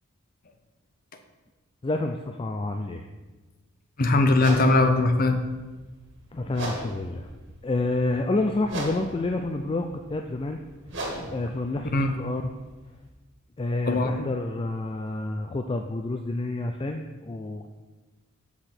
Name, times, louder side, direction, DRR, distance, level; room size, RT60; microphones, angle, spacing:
voice 1, 1.8-3.0 6.3-7.3 7.6-10.6 11.3-12.4 13.6-17.7, left 2 dB, 25° left, 5 dB, 0.4 m, -29 dB
voice 2, 4.0-5.4 11.8-12.1 13.9-14.1, left 2 dB, 40° left, 7 dB, 0.7 m, -20 dB
sound 1, 4.3-13.1, right 1 dB, 55° right, 1.9 m, -39 dB
6.3 x 5.9 x 6.6 m, 1.2 s
head